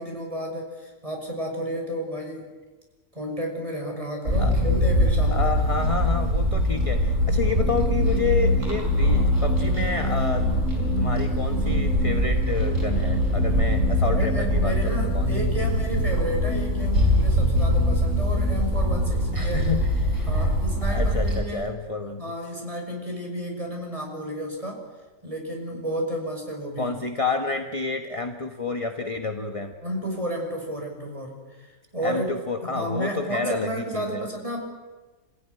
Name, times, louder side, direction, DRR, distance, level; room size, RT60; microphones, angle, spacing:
voice 1, 0.0-2.5 3.1-5.6 14.0-19.6 20.3-21.8 22.2-24.9 25.2-27.0 29.8-32.3 32.6-34.6, equal, 25° right, 1 dB, 6.2 m, -32 dB
sound 1, 4.3-21.4, equal, 70° right, 5.1 m, -22 dB
voice 2, 5.3-10.5 10.7-15.3 19.3-20.5 20.8-22.2 26.8-29.7 32.0-34.3, left 4 dB, 25° left, 5 dB, 1.3 m, -29 dB
27.5 x 16.0 x 9.9 m, 1.3 s
omnidirectional pair, 1.4 m